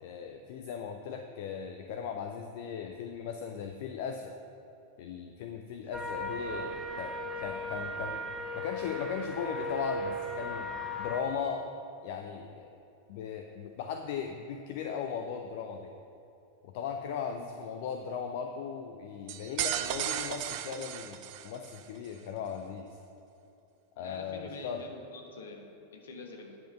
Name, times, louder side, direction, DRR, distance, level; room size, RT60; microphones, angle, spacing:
voice 1, 0.0-4.3 5.0-8.2 8.5-10.7 11.0-11.7 12.0-12.7 13.1-15.9 16.6-22.9 24.0-24.8, left 7 dB, 50° left, 5 dB, 0.5 m, -38 dB
sound 1, 5.9-11.2, left 1 dB, 5° right, 0.9 m, -37 dB
voice 2, 6.4-8.3 24.0-26.6, left 3 dB, 65° left, 2 dB, 1.3 m, -48 dB
sound 2, 19.3-21.8, right 11 dB, 45° right, 0.5 m, -35 dB
10.0 x 5.8 x 5.6 m, 2.8 s
figure-of-eight pair, 90°, 0 cm